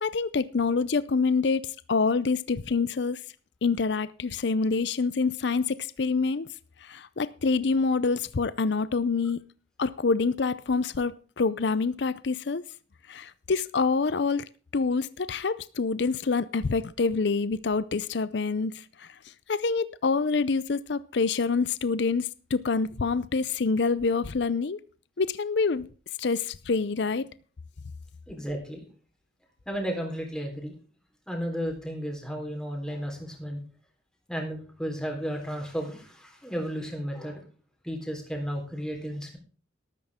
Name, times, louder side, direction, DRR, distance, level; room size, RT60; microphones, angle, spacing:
voice 1, 0.0-3.2 3.6-6.5 6.8-9.4 9.8-12.6 13.1-14.4 14.7-19.1 19.5-24.8 25.2-25.9 26.2-27.3, left 4 dB, 65° left, 0.6 m, -26 dB
voice 2, 28.3-28.8 29.7-30.7 31.3-33.6 34.3-37.4 37.8-39.4, equal, 5° left, 3.8 m, -33 dB
13.0 x 13.0 x 3.6 m
head